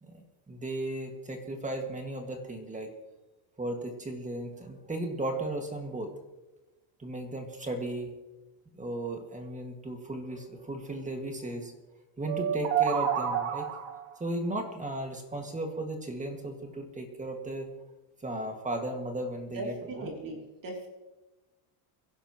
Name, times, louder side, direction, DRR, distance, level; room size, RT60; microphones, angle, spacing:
voice 1, 0.0-2.9 3.6-6.1 7.0-8.1 8.7-11.7 12.2-13.7 14.2-17.7 18.2-20.1, right 1 dB, 15° right, 3 dB, 2.0 m, -35 dB
sound 1, 12.3-14.1, right 9 dB, 70° right, 1.9 m, -29 dB
voice 2, 19.5-20.9, right 2 dB, 40° right, -1 dB, 3.3 m, -38 dB
24.0 x 11.5 x 3.1 m, 1.1 s
cardioid pair, 130°, 48 cm